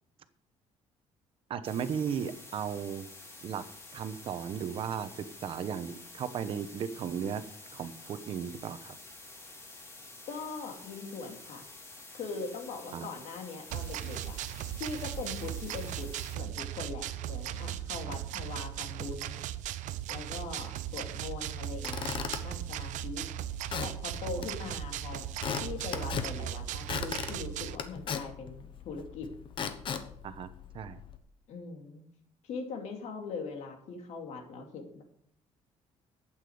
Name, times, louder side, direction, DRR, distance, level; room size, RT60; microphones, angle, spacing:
voice 1, 1.5-3.1 3.4-3.7 3.9-7.4 7.7-9.0 12.9-13.1 30.2-30.5 30.7-31.0, right 7 dB, 45° right, 12 dB, 1.0 m, -35 dB
sound 1, 1.6-16.4, left 2 dB, 20° left, 2.8 m, -49 dB
voice 2, 10.3-11.7 12.1-14.4 14.8-19.4 20.1-23.3 23.8-25.2 25.6-29.3 31.5-32.0 32.4-35.0, left 4 dB, 65° left, 4 dB, 2.5 m, -41 dB
sound 2, 13.7-27.8, right 12 dB, 90° right, 0.7 m, -37 dB
Squeak / Wood, 21.6-31.2, left 7 dB, 40° left, 1.1 m, -39 dB
12.0 x 8.9 x 5.0 m, 0.69 s
cardioid pair, 175°, 12 cm